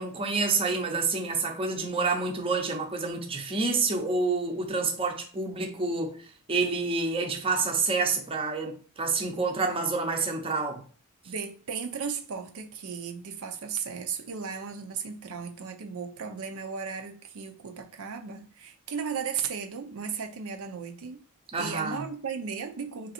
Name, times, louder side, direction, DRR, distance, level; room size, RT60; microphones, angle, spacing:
voice 1, 0.0-6.2 6.5-10.8 21.5-22.0, right 4 dB, 25° right, 0.7 m, -28 dB
voice 2, 11.3-21.2 21.6-23.1, right 6 dB, 70° right, 0.5 m, -35 dB
3.3 x 2.7 x 4.1 m
head